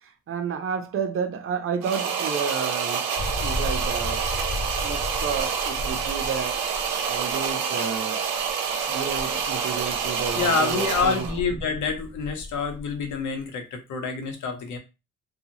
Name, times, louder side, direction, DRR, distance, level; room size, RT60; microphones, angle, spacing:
voice 1, 0.0-3.1 3.4-4.3 4.8-6.6 7.1-8.2 8.9-11.3, right 6 dB, 45° right, 0.7 m, -31 dB
sound 1, 1.8-11.4, right 6 dB, 90° right, 0.7 m, -27 dB
sound 2, 3.2-7.5 8.4-8.5 9.1-13.4, left 1 dB, 20° left, 0.4 m, -35 dB
voice 2, 10.4-14.8, left 5 dB, 75° left, 0.9 m, -27 dB
2.7 x 2.4 x 2.8 m
cardioid pair, 90°, 30 cm